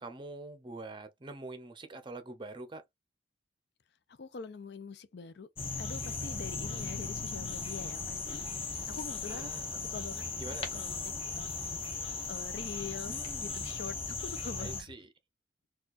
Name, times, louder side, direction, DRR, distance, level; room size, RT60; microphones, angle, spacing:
voice 1, 0.0-2.8 9.3-9.7 10.4-10.7 13.1-13.7 14.6-15.1, right 2 dB, 25° right, 0.6 m, -45 dB
voice 2, 4.2-5.5 5.8-9.5 9.9-10.2 10.7-11.8 12.3-14.9, left 5 dB, 60° left, 0.5 m, -44 dB
sound 1, 5.6-14.8, left 4 dB, 30° left, 0.8 m, -37 dB
4.2 x 2.3 x 2.4 m
head